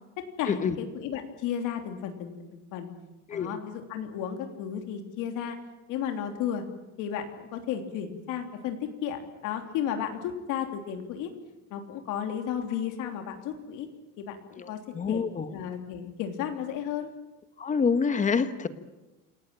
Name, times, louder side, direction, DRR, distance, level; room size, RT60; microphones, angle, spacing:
voice 1, 0.4-2.9 3.3-5.6 5.9-6.6 7.0-11.3 11.7-13.9 14.2-14.8 15.1-15.2 15.5-17.1, left 9 dB, 60° left, 5 dB, 3.4 m, -33 dB
voice 2, 14.6-15.5 17.6-18.7, left 5 dB, 20° left, 11 dB, 1.3 m, -27 dB
28.5 x 19.0 x 9.0 m, 1.0 s
cardioid pair, 160°, 34 cm